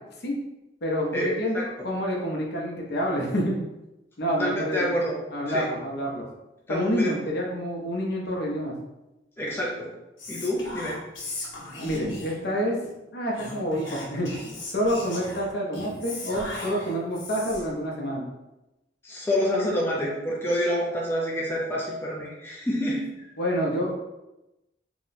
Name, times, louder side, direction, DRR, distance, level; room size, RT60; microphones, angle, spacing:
voice 1, 0.8-3.6 4.2-4.9 5.3-6.2 6.7-8.7 11.8-12.8 13.1-14.3 14.7-18.3 23.4-23.9, equal, 60° left, -1 dB, 0.7 m, -28 dB
voice 2, 4.4-5.2 5.5-5.7 6.7-7.1 9.4-9.9 10.3-11.0 19.0-23.0, equal, 10° left, -4 dB, 0.5 m, -27 dB
Whispering, 10.2-12.5 13.3-17.8, left 2 dB, 85° left, 0.9 m, -38 dB
2.9 x 2.1 x 4.0 m, 0.96 s
head